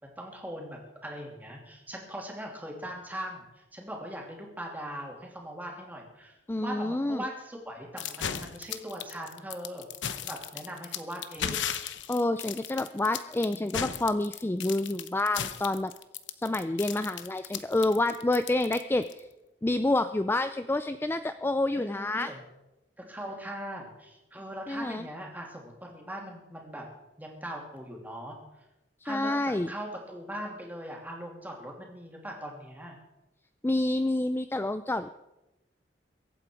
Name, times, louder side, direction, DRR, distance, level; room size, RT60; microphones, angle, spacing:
voice 1, 0.0-6.3 6.6-11.7 21.8-22.4 23.0-26.9 27.2-28.4 29.0-33.0, equal, 10° right, -1 dB, 2.9 m, -40 dB
voice 2, 6.5-7.2 12.1-15.9 16.4-19.3 19.6-22.3 24.7-25.1 29.1-29.7 33.6-35.1, left 2 dB, 10° left, 11 dB, 0.4 m, -28 dB
sound 1, 8.0-19.2, left 9 dB, 85° left, 0.9 m, -36 dB
23.0 x 8.8 x 4.6 m, 0.95 s
head